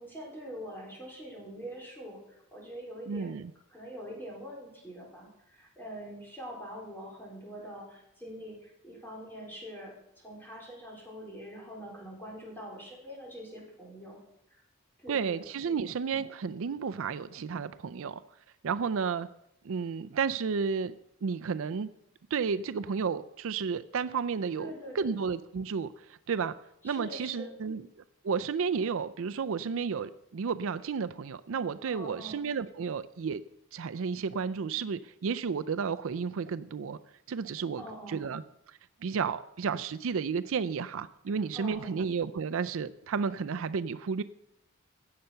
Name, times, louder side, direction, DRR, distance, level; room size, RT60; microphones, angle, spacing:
voice 1, 0.0-3.3 3.7-14.2 14.5-14.6 15.0-15.9 24.6-25.2 26.8-27.5 31.8-32.4 37.8-38.2 41.5-42.0, equal, 10° left, -3 dB, 4.0 m, -44 dB
voice 2, 3.1-3.5 15.1-18.2 18.6-19.3 19.6-21.9 22.3-26.5 26.8-27.8 28.2-33.4 33.7-37.0 37.3-38.4 38.7-44.2, right 5 dB, 65° right, 12 dB, 0.4 m, -32 dB
16.5 x 6.7 x 5.7 m, 0.81 s
head